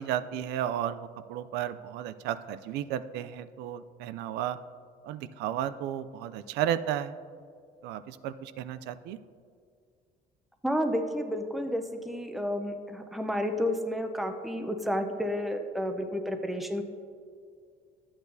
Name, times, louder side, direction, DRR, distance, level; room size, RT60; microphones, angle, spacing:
voice 1, 0.0-4.6 5.0-7.2 7.8-9.2, right 10 dB, 90° right, 13 dB, 0.4 m, -33 dB
voice 2, 10.6-16.8, equal, ahead, 5 dB, 0.6 m, -31 dB
11.5 x 8.6 x 2.7 m, 2.2 s
cardioid pair, 110°, 17 cm